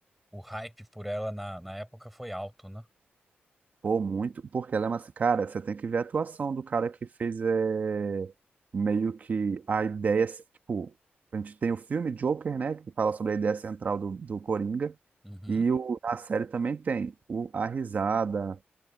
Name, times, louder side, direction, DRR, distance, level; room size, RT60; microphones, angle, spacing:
voice 1, 0.3-2.9 15.2-15.7, equal, ahead, 5.6 m, -38 dB
voice 2, 3.8-8.3 8.7-10.4 10.7-10.9 11.3-15.0 15.5-18.6, right 5 dB, 45° right, 1.4 m, -29 dB
wide cardioid pair, 150°, 4 cm